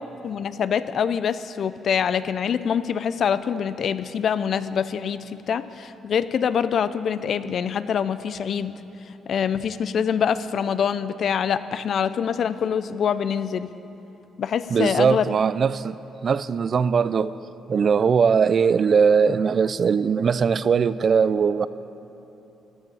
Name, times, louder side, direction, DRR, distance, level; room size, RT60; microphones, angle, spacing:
voice 1, 0.2-8.8 9.3-13.7 14.4-15.3, left 7 dB, 60° left, 0.4 m, -25 dB
voice 2, 14.7-17.3 17.7-21.7, right 6 dB, 50° right, 0.3 m, -20 dB
15.0 x 9.9 x 5.5 m
cardioid pair, 90°, 0 cm